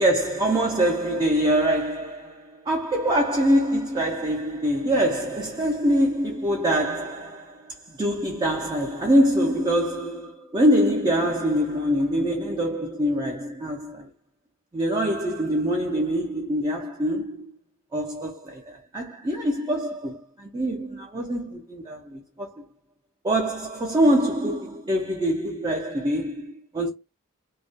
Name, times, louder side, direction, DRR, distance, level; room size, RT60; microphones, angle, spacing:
voice 1, 0.0-7.7 8.0-14.1 14.7-17.5 17.9-22.5 23.2-26.9, equal, 20° right, 0.4 m, -24 dB
2.3 x 2.1 x 2.6 m
head